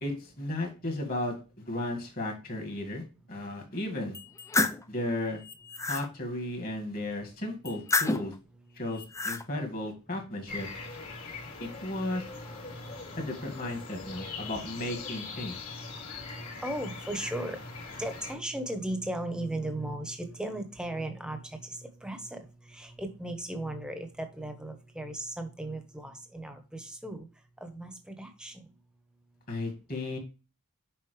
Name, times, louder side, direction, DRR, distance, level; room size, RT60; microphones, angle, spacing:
voice 1, 0.0-4.2 4.9-5.4 5.9-8.3 8.8-10.7 11.6-12.2 13.2-15.6 29.5-30.2, left 1 dB, 40° left, 3 dB, 2.1 m, -34 dB
sound 1, 4.1-4.8 5.4-6.1 7.7-8.4 8.9-9.4, left 3 dB, 15° left, 0.4 m, -29 dB
sound 2, 10.5-18.3, left 4 dB, 70° left, 2.8 m, -41 dB
voice 2, 16.3-17.6 17.9-22.4 22.7-27.3 27.6-28.6, right 1 dB, 5° right, 7 dB, 1.0 m, -36 dB
7.0 x 5.4 x 3.3 m, 0.32 s
head